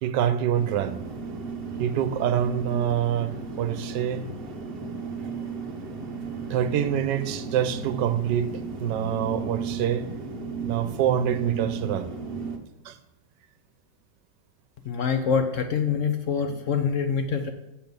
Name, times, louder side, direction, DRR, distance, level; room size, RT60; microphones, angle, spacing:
voice 1, 0.0-1.0 1.8-4.2 6.5-10.0 10.6-12.1 12.8-13.0, right 9 dB, 80° right, 11 dB, 1.2 m, -26 dB
sound 1, 0.5-12.6, right 4 dB, 45° right, 0.8 m, -35 dB
voice 2, 14.9-17.5, left 6 dB, 60° left, 7 dB, 0.8 m, -25 dB
7.8 x 7.4 x 5.2 m, 0.94 s
omnidirectional pair, 1.9 m